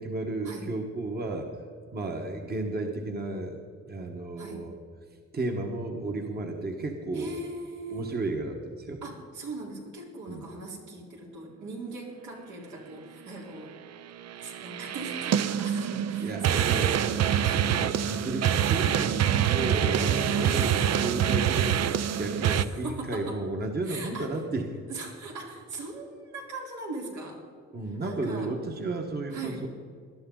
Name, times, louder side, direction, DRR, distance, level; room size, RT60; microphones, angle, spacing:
voice 1, 0.0-1.5 1.9-4.7 5.3-7.3 7.9-9.0 10.3-10.4 16.2-16.9 17.5-24.6 27.7-29.7, right 2 dB, 35° right, 3 dB, 1.3 m, -33 dB
voice 2, 7.1-8.2 9.0-13.7 14.4-17.0 17.4-17.7 20.4-20.7 22.5-23.4 23.8-24.3 24.9-27.4 28.0-28.5 29.3-29.6, right 3 dB, 85° right, -2 dB, 3.9 m, -40 dB
sound 1, 14.3-22.6, right 9 dB, 60° right, 0.6 m, -25 dB
19.0 x 12.0 x 3.9 m, 2.2 s
cardioid pair, 135°, 29 cm